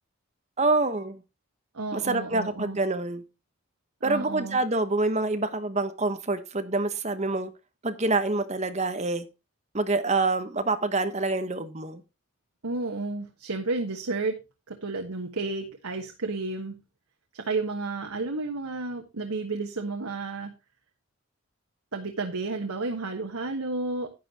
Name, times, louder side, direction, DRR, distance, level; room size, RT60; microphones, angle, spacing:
voice 1, 0.6-1.2 1.9-3.2 4.0-7.5 7.8-9.3 9.7-12.0, right 3 dB, 30° right, 9 dB, 1.1 m, -26 dB
voice 2, 1.7-2.8 4.0-4.6 12.6-14.4 14.7-16.8 17.3-20.5 21.9-24.1, right 3 dB, 85° right, 4 dB, 1.4 m, -32 dB
11.0 x 9.7 x 2.9 m, 0.27 s
head